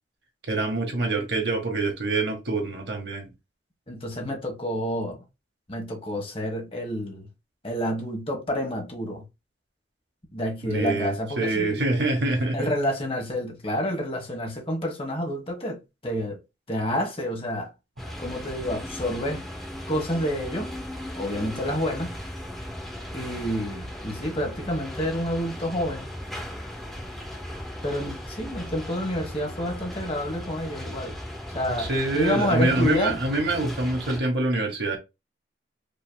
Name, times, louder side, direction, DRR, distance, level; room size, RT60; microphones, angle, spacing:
voice 1, 0.5-3.3 10.6-12.7 31.8-35.0, right 2 dB, 65° right, 1.5 m, -25 dB
voice 2, 3.9-5.2 5.7-7.3 7.6-9.2 10.3-11.9 12.5-16.4 16.7-17.7 18.2-19.4 19.9-20.7 21.1-22.1 23.1-26.1 27.8-31.1 31.5-33.2, equal, 30° left, 1.4 m, -29 dB
sound 1, 18.0-34.2, equal, ahead, 1.9 m, -37 dB
5.3 x 3.2 x 2.2 m
head